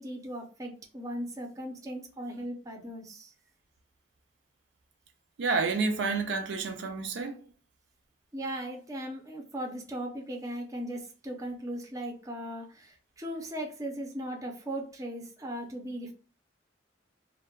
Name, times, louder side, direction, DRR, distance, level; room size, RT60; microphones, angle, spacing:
voice 1, 0.0-3.3 8.3-16.1, right 1 dB, 20° right, 0.5 m, -38 dB
voice 2, 5.4-7.5, right 4 dB, 70° right, 0.4 m, -29 dB
2.2 x 2.1 x 3.6 m
head